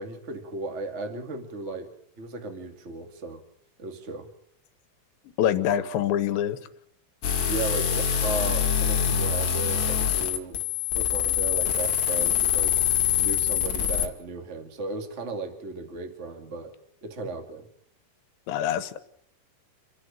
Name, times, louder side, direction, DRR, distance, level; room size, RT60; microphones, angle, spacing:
voice 1, 0.0-3.4 3.8-4.3 7.4-10.6 10.9-12.7 13.2-16.7 17.0-17.6, right 3 dB, 25° right, 1.6 m, -36 dB
voice 2, 5.4-6.6 18.5-19.0, left 10 dB, 85° left, 3.4 m, -25 dB
sound 1, 7.2-14.1, left 8 dB, 50° left, 2.9 m, -24 dB
28.5 x 10.5 x 8.9 m
omnidirectional pair, 5.0 m